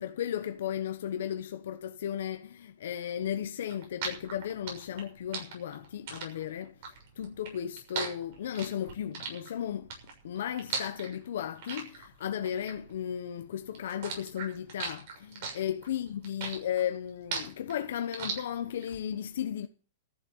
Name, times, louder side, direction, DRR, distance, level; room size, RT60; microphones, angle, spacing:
voice 1, 0.0-6.7 7.2-9.9 10.2-19.7, left 10 dB, 75° left, 0.9 m, -35 dB
sound 1, 3.6-13.4 13.7-18.9, right 5 dB, 50° right, 6.6 m, -38 dB
14.0 x 7.4 x 8.8 m
supercardioid pair, 160°, 0 cm